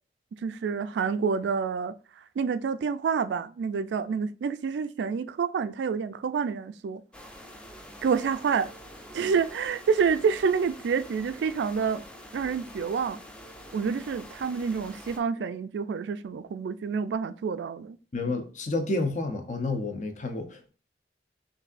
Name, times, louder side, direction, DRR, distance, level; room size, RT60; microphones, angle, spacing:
voice 1, 0.4-1.9 2.4-7.0 8.0-8.7 9.1-12.0 12.3-13.2 13.7-18.0, right 6 dB, 80° right, 0.3 m, -28 dB
sound 1, 7.1-15.2, equal, 5° left, 0.4 m, -46 dB
voice 2, 18.1-20.7, left 2 dB, 45° left, 0.7 m, -30 dB
6.1 x 2.6 x 2.4 m
head